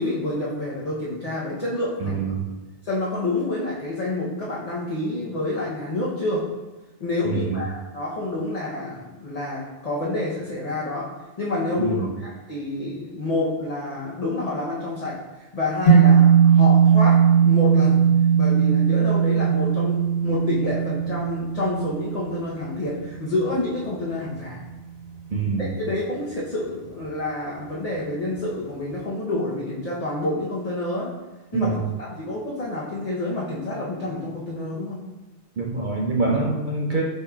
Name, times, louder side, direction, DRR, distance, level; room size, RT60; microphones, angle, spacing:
voice 1, 0.0-2.2 2.8-6.4 7.0-11.1 11.4-18.0 18.3-24.6 25.9-31.1 31.5-35.0, left 2 dB, 40° left, -7 dB, 0.8 m, -28 dB
voice 2, 2.0-2.5 7.2-7.7 11.8-12.2 25.3-25.8 31.5-31.9 35.6-37.0, right 3 dB, 55° right, -1 dB, 0.6 m, -25 dB
sound 1, 15.9-24.3, right 7 dB, 65° left, 1.5 m, -18 dB
5.1 x 4.2 x 2.3 m, 1.1 s
omnidirectional pair, 1.2 m